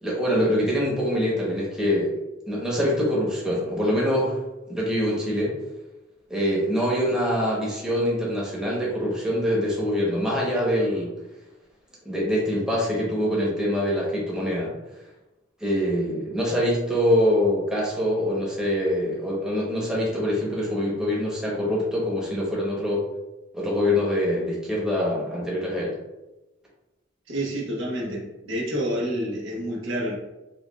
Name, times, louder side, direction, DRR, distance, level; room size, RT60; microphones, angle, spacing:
voice 1, 0.0-2.1 2.5-4.4 4.7-5.5 6.3-11.1 12.0-14.7 15.6-23.0 23.5-25.9, equal, 5° right, -5 dB, 0.9 m, -24 dB
voice 2, 27.3-30.1, equal, 85° right, -4 dB, 1.1 m, -28 dB
5.1 x 2.4 x 2.3 m, 1.0 s
head